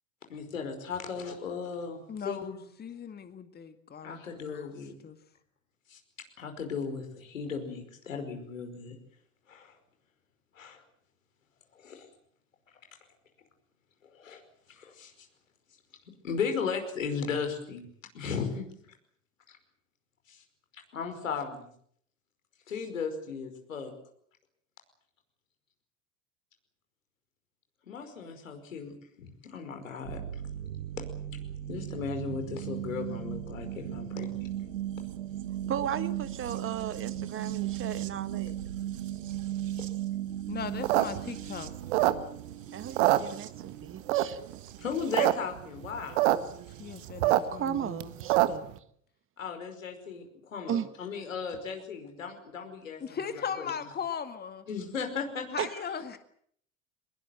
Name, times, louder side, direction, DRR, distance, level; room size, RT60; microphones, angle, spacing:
voice 1, 0.3-2.7 4.0-5.0 5.9-6.0 6.4-8.9 9.5-9.8 10.6-10.8 11.8-12.1 14.1-14.4 14.7-15.3 16.2-17.9 18.1-18.7 20.3-20.4 20.9-21.7 22.7-23.9 27.9-28.9 29.2-30.2 31.7-34.5 44.8-46.2 49.4-53.7 54.7-55.5, left 5 dB, 80° left, 5 dB, 5.2 m, -36 dB
voice 2, 2.1-4.7 5.0-5.2 40.5-41.7 46.8-48.1 53.0-54.7 55.5-56.2, left 7 dB, 25° left, 9 dB, 2.0 m, -38 dB
sound 1, 30.0-47.1 48.3-48.4, right 12 dB, 75° right, 1.3 m, -37 dB
voice 3, 35.7-38.6 42.7-44.4 47.5-48.7 50.7-50.9 55.6-55.7, right 9 dB, 30° right, 12 dB, 1.6 m, -35 dB
sound 2, 40.7-42.5 42.8-43.7 44.1-44.5 44.9-45.3 45.6-45.7 45.8-46.4 46.7-48.7, right 16 dB, 60° right, 1.7 m, -25 dB
23.0 x 21.5 x 7.9 m, 0.65 s
figure-of-eight pair, 80°, 39 cm